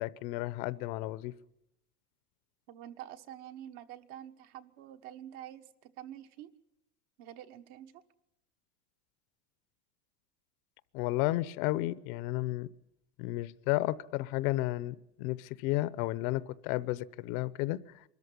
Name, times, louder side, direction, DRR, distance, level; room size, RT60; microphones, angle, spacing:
voice 1, 0.0-1.3 10.9-12.7 13.2-18.0, left 18 dB, 60° left, 18 dB, 0.9 m, -32 dB
voice 2, 2.7-6.5 7.2-8.0, right 11 dB, 55° right, 7 dB, 1.5 m, -47 dB
24.0 x 13.5 x 9.9 m, 0.85 s
supercardioid pair, 135°, 48 cm